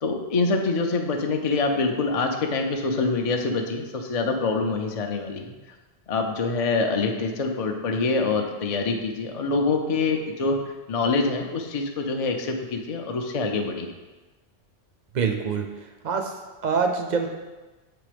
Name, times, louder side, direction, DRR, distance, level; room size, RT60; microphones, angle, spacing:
voice 1, 0.0-5.6 6.1-10.6 10.9-13.9, left 3 dB, 45° left, 3 dB, 0.5 m, -25 dB
voice 2, 15.1-15.7 16.0-16.3 16.6-17.3, right 5 dB, 50° right, 4 dB, 0.5 m, -24 dB
6.9 x 3.3 x 5.0 m, 1.2 s
omnidirectional pair, 1.3 m